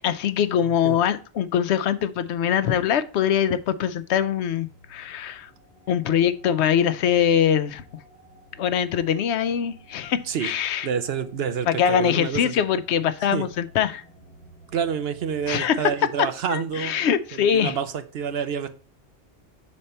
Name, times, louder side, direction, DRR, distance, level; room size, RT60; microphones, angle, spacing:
voice 1, 0.0-5.5 5.9-7.8 8.6-10.9 11.7-14.0 15.5-15.8 16.5-17.8, left 9 dB, 85° left, 0.9 m, -23 dB
sound 1, 4.2-16.2, right 1 dB, 45° left, 1.6 m, -52 dB
voice 2, 10.8-12.5 13.3-13.5 14.7-17.0 17.3-18.7, right 7 dB, 65° right, 0.9 m, -28 dB
6.7 x 4.3 x 4.2 m
omnidirectional pair, 1.1 m